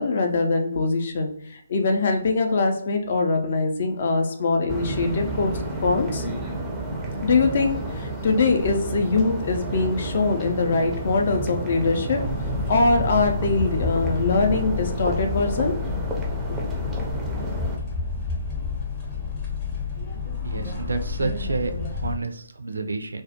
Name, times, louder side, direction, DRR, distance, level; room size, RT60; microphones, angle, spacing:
voice 1, 0.0-6.2 7.2-12.3 12.7-15.8, left 3 dB, 50° left, 4 dB, 0.4 m, -23 dB
sound 1, 4.7-17.8, right 2 dB, 10° right, 0.4 m, -30 dB
Auto Teller machine with baby cows, 12.2-22.2, left 5 dB, 30° left, 0.8 m, -30 dB
voice 2, 20.4-23.2, right 3 dB, 75° right, 7 dB, 0.3 m, -29 dB
2.2 x 2.1 x 2.7 m, 0.66 s
figure-of-eight pair, 145°, 0 cm